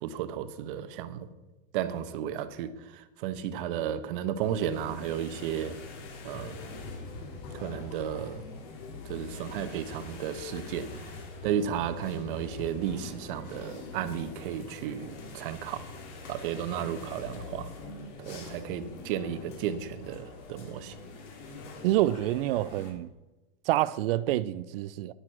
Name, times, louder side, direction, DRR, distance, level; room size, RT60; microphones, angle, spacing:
voice 1, 0.0-1.3 1.7-5.8 6.2-6.6 7.5-8.4 9.0-11.1 11.4-15.8 16.3-17.7 18.2-20.9, right 9 dB, 60° right, 1.3 m, -33 dB
sound 1, 4.4-22.9, left 3 dB, 50° left, 3.5 m, -43 dB
voice 2, 21.8-23.1 23.7-25.1, right 14 dB, 75° right, 0.6 m, -27 dB
11.0 x 10.0 x 6.0 m
supercardioid pair, 150°, 29 cm